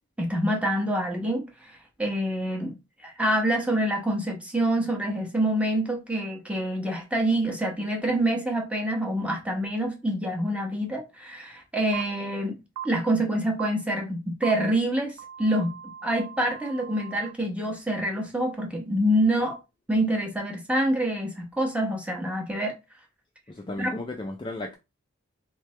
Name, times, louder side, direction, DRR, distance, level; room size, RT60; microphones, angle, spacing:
voice 1, 0.2-1.7 2.0-2.7 3.0-12.6 12.8-15.7 16.0-19.6 19.9-22.7 23.8-23.9, right 1 dB, 5° right, 1.0 m, -26 dB
sound 1, 11.9-12.0 12.8-12.9 13.6-13.7 14.4-14.5 15.2-17.3, right 9 dB, 75° right, 0.5 m, -39 dB
voice 2, 23.5-24.8, left 1 dB, 20° left, 0.5 m, -34 dB
3.7 x 3.3 x 3.2 m
head